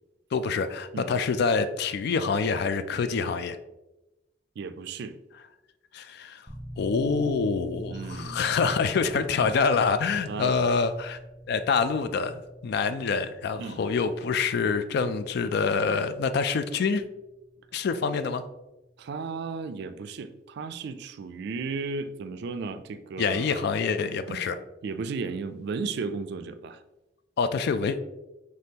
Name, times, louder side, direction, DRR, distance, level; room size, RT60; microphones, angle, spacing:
voice 1, 0.3-3.6 5.9-6.4 6.8-11.2 11.5-17.0 17.7-18.4 23.2-24.5 27.4-28.0, left 5 dB, 60° left, 11 dB, 0.3 m, -26 dB
voice 2, 4.6-5.2 7.9-8.4 9.0-9.5 10.3-10.6 13.6-13.8 19.0-23.7 24.3-24.5 24.8-26.8, right 4 dB, 65° right, 11 dB, 0.3 m, -35 dB
sound 1, 6.5-23.2, equal, 5° right, 0.5 m, -46 dB
5.2 x 3.3 x 2.8 m, 1.0 s
head